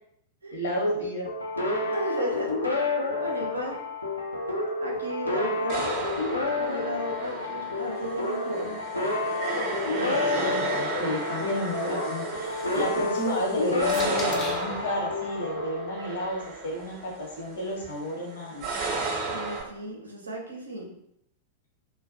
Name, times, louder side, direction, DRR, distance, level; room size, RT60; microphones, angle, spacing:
voice 1, 0.5-1.3 9.9-18.7, equal, 65° left, -2 dB, 0.8 m, -31 dB
sound 1, 1.3-16.6, left 3 dB, 90° left, 0.4 m, -30 dB
voice 2, 1.9-2.5 3.1-3.8 4.8-5.9 6.5-8.8 19.3-20.9, equal, 80° right, 0 dB, 0.6 m, -35 dB
sound 2, 5.7-19.6, right 3 dB, 40° right, 0.7 m, -34 dB
sound 3, 12.3-14.8 15.8-17.9, left 3 dB, 25° left, 0.4 m, -45 dB
2.2 x 2.2 x 2.6 m, 0.75 s
figure-of-eight pair, 95°, 0 cm